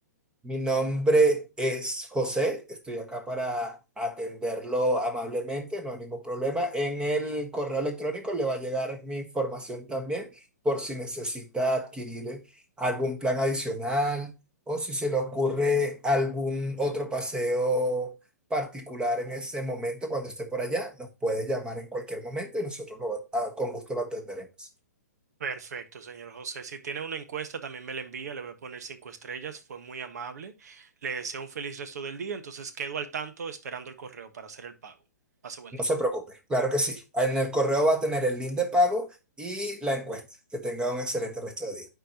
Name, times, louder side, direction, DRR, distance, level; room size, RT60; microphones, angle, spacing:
voice 1, 0.4-10.3 10.6-12.4 12.8-14.3 14.7-18.1 18.5-24.7 35.7-39.1 39.4-40.2 40.5-41.9, equal, 10° right, 1.4 m, -28 dB
voice 2, 25.4-34.9 35.4-35.8, right 6 dB, 70° right, 1.3 m, -37 dB
11.5 x 4.6 x 2.8 m
hypercardioid pair, 125°, 9 cm